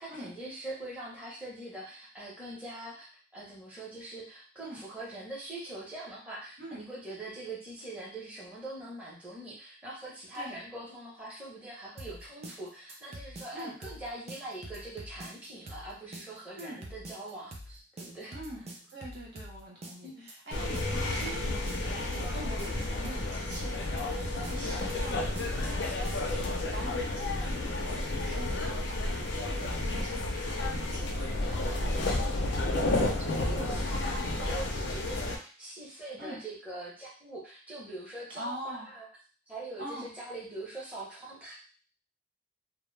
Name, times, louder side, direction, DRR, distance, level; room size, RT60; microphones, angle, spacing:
voice 1, 0.0-3.1 3.3-18.4 20.0-20.3 21.2-21.4 22.3-22.5 33.0-39.1 39.5-41.6, right 2 dB, 10° right, -7 dB, 0.7 m, -43 dB
sound 1, 12.0-26.7, right 1 dB, 35° right, 0.4 m, -45 dB
voice 2, 18.3-32.0 36.2-36.4 38.4-38.9 39.8-40.1, right 1 dB, 65° right, -2 dB, 0.8 m, -44 dB
sound 2, 20.5-35.4, left 2 dB, 70° left, 0.5 m, -31 dB
2.1 x 2.1 x 3.1 m, 0.39 s
head